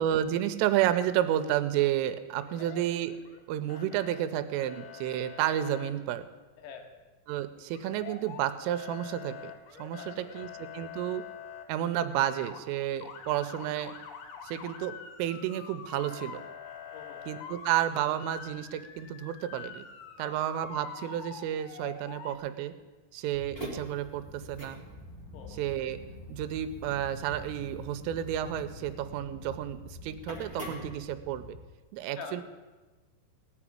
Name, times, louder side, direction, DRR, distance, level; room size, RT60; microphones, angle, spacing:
voice 1, 0.0-3.1 3.5-6.3 7.3-9.5 9.8-11.2 11.7-13.9 14.4-16.4 17.3-19.9 20.2-22.7 23.1-24.8 25.6-26.0 26.3-31.6 31.9-32.4, right 11 dB, 80° right, 10 dB, 3.2 m, -31 dB
Motor vehicle (road) / Siren, 2.4-3.4 3.7-4.2 4.6-5.9 7.7-8.4 8.7-11.6 12.1-12.6 13.0-22.4, left 7 dB, 70° left, 2.6 m, -45 dB
voice 2, 2.6-2.9 6.6-6.9 10.0-10.5 16.9-17.3 20.2-20.6 25.3-25.7 32.1-32.4, left 6 dB, 90° left, 4 dB, 4.4 m, -46 dB
sound 1, 23.3-31.6, left 1 dB, 20° left, 1.7 m, -44 dB
17.5 x 6.1 x 10.0 m, 1.2 s
omnidirectional pair, 5.9 m